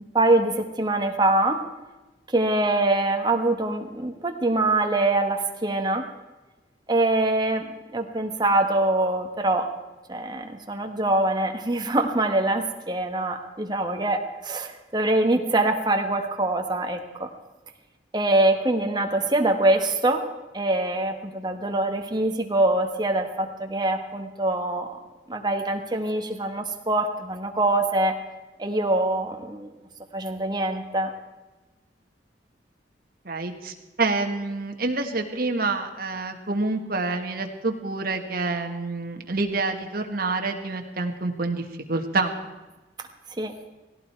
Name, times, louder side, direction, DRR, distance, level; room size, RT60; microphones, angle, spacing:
voice 1, 0.1-1.7 2.3-6.1 6.9-7.6 7.9-9.7 10.1-17.3 18.1-20.3 20.5-24.9 25.3-28.2 28.6-29.7 30.1-31.1 43.4-43.5, right 2 dB, 25° right, 4 dB, 1.5 m, -24 dB
voice 2, 33.2-42.3, right 3 dB, 55° right, 4 dB, 1.7 m, -27 dB
17.5 x 17.0 x 4.6 m, 1.1 s
head